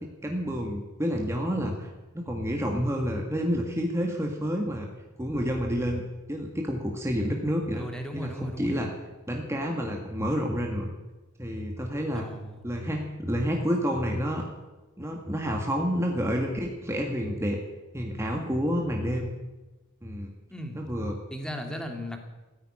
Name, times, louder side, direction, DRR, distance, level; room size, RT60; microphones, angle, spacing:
voice 1, 0.0-1.9 2.1-4.9 5.2-7.9 8.1-8.9 9.3-10.9 11.4-12.2 12.6-14.4 15.0-17.6 17.9-19.3 20.0-20.3 20.7-21.2, equal, 15° right, 1 dB, 1.7 m, -29 dB
voice 2, 7.7-8.8 12.1-12.6 20.5-20.8 21.3-22.3, equal, 5° left, 4 dB, 2.1 m, -37 dB
14.5 x 9.7 x 9.8 m, 1.1 s
head